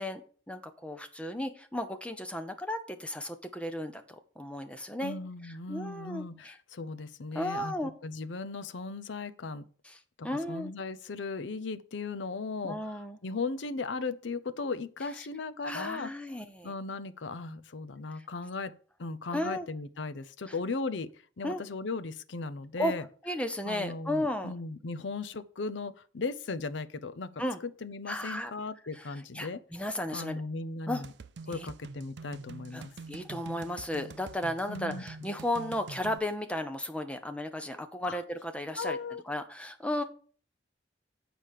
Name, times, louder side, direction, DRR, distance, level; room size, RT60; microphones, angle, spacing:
voice 1, 0.0-5.2 5.7-6.5 7.3-7.9 9.8-10.0 10.2-10.7 12.6-13.2 15.6-16.7 19.3-19.7 21.4-21.6 22.8-22.9 23.2-24.5 27.4-27.6 28.1-28.5 29.0-29.1 29.3-30.4 30.9-31.0 31.5-31.7 32.7-39.0 39.2-40.0, left 1 dB, 5° left, 0.7 m, -34 dB
voice 2, 5.0-9.7 10.2-16.1 16.6-18.7 19.0-21.1 21.4-23.1 23.7-27.4 27.8-29.6 30.1-31.1 31.5-32.9 34.7-35.0 38.0-38.2 38.8-39.2, left 3 dB, 75° left, 0.6 m, -37 dB
sound 1, 31.0-36.2, right 4 dB, 60° right, 0.5 m, -46 dB
7.5 x 5.1 x 6.4 m
head